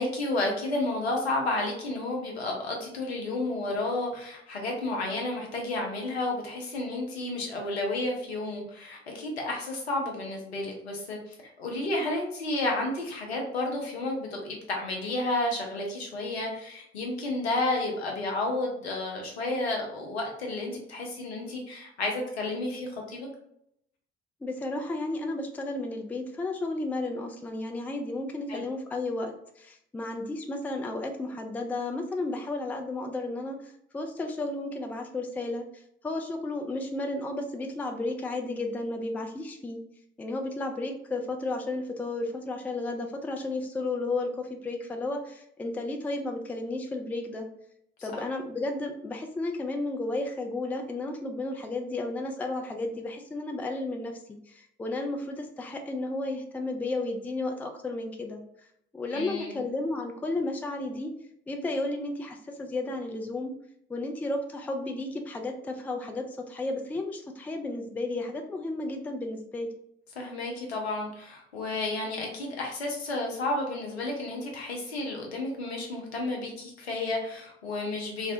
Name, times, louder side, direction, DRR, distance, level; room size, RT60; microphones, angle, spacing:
voice 1, 0.0-23.3 28.5-28.6 48.0-48.1 59.1-59.6 70.2-78.3, left 2 dB, 80° left, 0 dB, 0.6 m, -31 dB
voice 2, 24.4-35.6 36.0-39.8 40.2-47.5 48.0-54.2 54.5-58.4 58.9-61.1 61.5-63.5 63.9-69.7, left 2 dB, 5° left, 4 dB, 0.3 m, -33 dB
3.2 x 2.1 x 2.6 m, 0.72 s
figure-of-eight pair, 40°, 31 cm